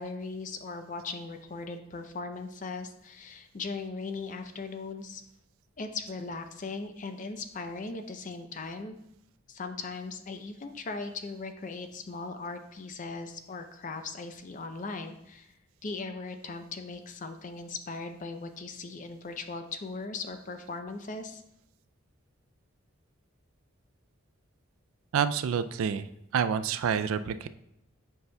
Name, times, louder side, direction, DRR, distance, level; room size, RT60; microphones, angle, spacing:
voice 1, 0.0-5.2 5.8-9.0 9.5-15.5 15.8-21.4, left 3 dB, 40° left, 7 dB, 0.5 m, -38 dB
voice 2, 25.1-27.5, right 7 dB, 80° right, 13 dB, 0.3 m, -28 dB
7.9 x 5.4 x 2.2 m, 0.83 s
head